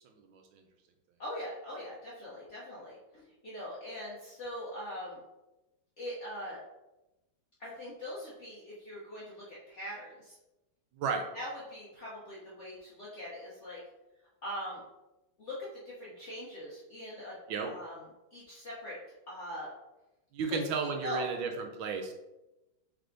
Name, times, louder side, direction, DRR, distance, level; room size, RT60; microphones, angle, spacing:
voice 1, 1.2-5.2 6.0-6.6 7.6-10.4 11.3-13.8 14.4-14.8 15.4-17.4 17.6-18.0 18.3-19.0 19.3-19.7 20.5-20.6 21.0-21.3, equal, 55° left, -6 dB, 0.8 m, -42 dB
voice 2, 20.3-22.1, right 5 dB, 75° right, 4 dB, 1.3 m, -33 dB
3.5 x 3.4 x 3.8 m, 0.99 s
omnidirectional pair, 2.3 m